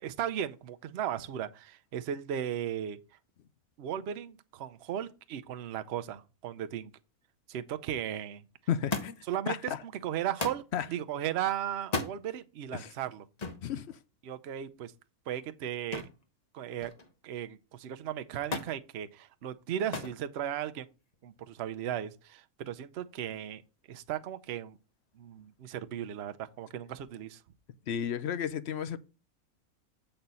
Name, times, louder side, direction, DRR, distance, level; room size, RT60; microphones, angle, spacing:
voice 1, 0.0-3.0 3.8-6.9 7.5-8.4 9.3-10.6 10.9-13.2 14.2-14.9 15.3-16.0 16.5-16.9 17.2-20.9 21.2-23.6 23.9-24.8 25.2-27.4, right 10 dB, 55° right, 0.8 m, -36 dB
voice 2, 8.7-9.2 9.5-9.8 10.7-10.9 12.7-12.9 13.6-14.0 27.9-29.0, left 9 dB, 60° left, 0.7 m, -33 dB
Thump thud, 8.9-9.4 10.4-10.7 11.8-12.2 13.4-13.7 15.9-16.2 16.6-17.2 18.5-18.8 19.9-20.2 21.1-21.6 22.6-22.7, left 3 dB, 35° left, 0.9 m, -35 dB
7.9 x 4.4 x 5.3 m
omnidirectional pair, 1.5 m